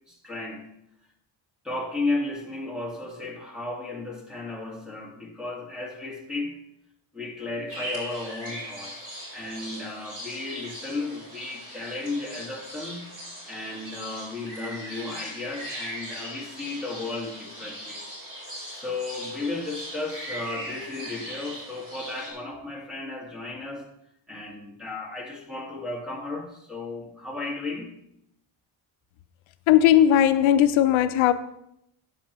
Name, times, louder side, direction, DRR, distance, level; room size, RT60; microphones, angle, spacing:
voice 1, 0.1-0.7 1.6-6.6 7.1-13.1 13.5-18.0 18.6-23.9 24.3-27.9, left 3 dB, ahead, 1.8 m, -34 dB
sound 1, 7.7-22.3, equal, 30° right, 4.2 m, -39 dB
voice 2, 29.7-31.3, left 11 dB, 75° left, 0.6 m, -18 dB
12.5 x 8.7 x 3.0 m
cardioid pair, 155°, 47 cm